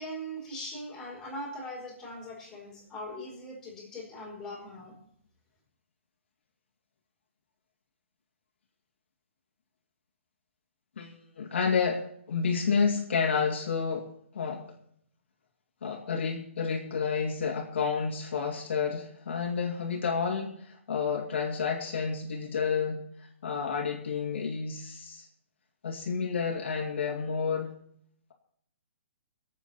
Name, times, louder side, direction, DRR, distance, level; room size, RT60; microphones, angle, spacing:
voice 1, 0.0-5.0, equal, 10° left, -4 dB, 4.6 m, -40 dB
voice 2, 11.0-14.1 14.3-14.6 15.8-23.0 23.4-25.3 25.8-27.7, left 5 dB, 65° left, 0 dB, 2.5 m, -30 dB
24.0 x 8.3 x 4.4 m, 0.67 s
hypercardioid pair, 165°, 7 cm